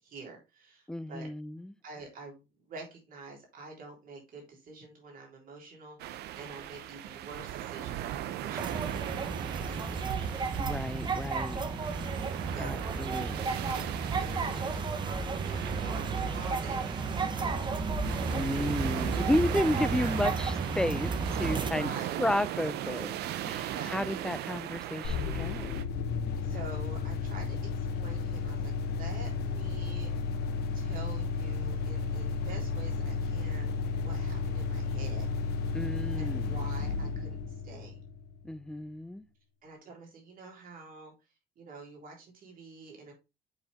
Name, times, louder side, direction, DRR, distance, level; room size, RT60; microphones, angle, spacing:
voice 1, 0.0-1.3 1.8-10.4 12.4-13.0 13.6-17.7 19.9-20.3 21.5-22.2 23.5-24.3 26.4-30.1 30.7-33.7 34.0-35.3 36.1-38.0 39.6-41.1 41.5-43.1, right 3 dB, 55° right, 3.5 m, -47 dB
voice 2, 0.9-1.7 10.6-11.6 12.6-13.7 18.3-21.9 22.2-25.8 35.7-36.6 38.4-39.2, left 1 dB, 5° left, 0.4 m, -32 dB
sound 1, 6.0-25.8, right 12 dB, 75° right, 0.6 m, -38 dB
sound 2, 8.6-21.7, right 4 dB, 25° right, 0.9 m, -33 dB
sound 3, 25.0-38.5, left 5 dB, 75° left, 1.1 m, -33 dB
7.8 x 4.4 x 3.5 m
cardioid pair, 110°, 17 cm